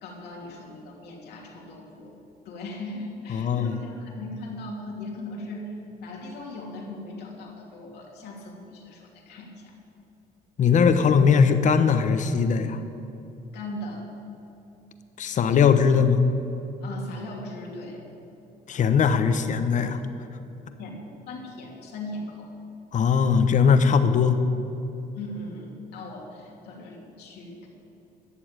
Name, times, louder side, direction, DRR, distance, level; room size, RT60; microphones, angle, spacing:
voice 1, 0.0-2.1 2.4-9.7 13.5-14.1 16.8-18.0 20.8-21.0 21.3-22.5 25.1-27.7, left 2 dB, 75° left, -1 dB, 2.9 m, -38 dB
voice 2, 3.3-3.8 10.6-12.8 15.2-16.2 18.7-20.0 22.9-24.4, left 6 dB, 45° left, 9 dB, 1.0 m, -20 dB
13.0 x 7.2 x 8.9 m, 2.9 s
cardioid pair, 110°, 17 cm